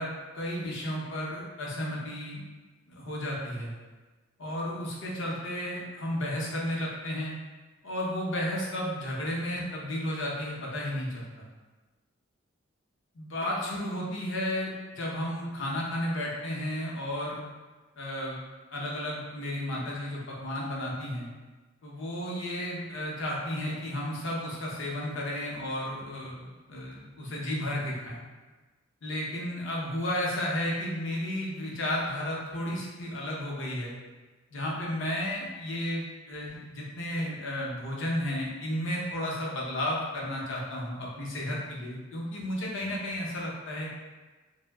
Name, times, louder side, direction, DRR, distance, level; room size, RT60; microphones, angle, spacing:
voice 1, 0.0-2.5 2.9-3.7 4.4-7.3 7.8-11.5 13.1-17.4 18.0-18.4 18.7-21.3 21.8-28.2 29.0-34.0 34.5-43.9, left 1 dB, 70° left, -4 dB, 0.7 m, -33 dB
2.7 x 2.1 x 3.3 m, 1.3 s
head